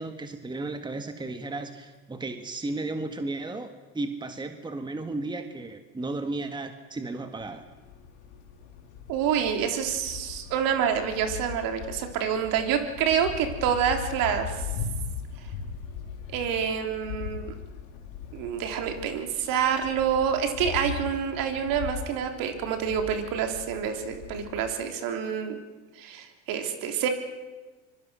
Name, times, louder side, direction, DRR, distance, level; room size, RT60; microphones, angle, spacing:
voice 1, 0.0-3.7 3.9-7.6, right 2 dB, 10° right, 7 dB, 1.7 m, -34 dB
sound 1, 7.4-24.7, left 7 dB, 70° left, 5.6 m, -39 dB
voice 2, 9.1-14.6 16.3-17.5 18.3-25.6 26.0-27.1, right 8 dB, 55° right, 5 dB, 3.5 m, -27 dB
25.0 x 22.5 x 6.3 m, 1.3 s
hypercardioid pair, 95°, 40 cm